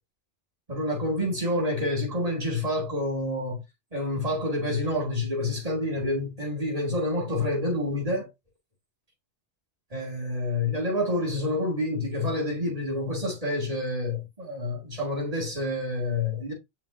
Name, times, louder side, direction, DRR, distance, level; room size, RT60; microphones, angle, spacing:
voice 1, 0.7-3.6 3.9-8.3 9.9-16.5, left 1 dB, 35° right, 2.8 m, -28 dB
7.0 x 5.8 x 2.7 m
omnidirectional pair, 1.1 m